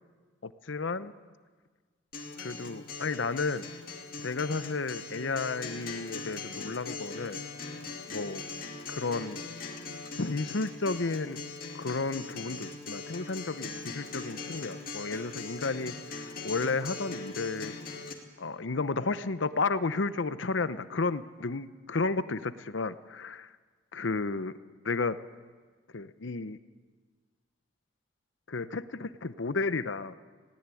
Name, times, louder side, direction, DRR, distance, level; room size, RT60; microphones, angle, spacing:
voice 1, 0.4-1.1 2.4-3.6 4.2-7.4 8.1-8.4 8.9-9.4 10.2-11.4 11.7-15.9 16.4-17.7 18.4-23.5 23.9-24.5 24.8-25.2 25.9-26.6 28.5-30.1, left 3 dB, 80° left, 13 dB, 0.8 m, -32 dB
Acoustic guitar, 2.1-18.1, left 4 dB, 50° left, 2.3 m, -41 dB
20.5 x 17.5 x 8.5 m, 1.5 s
head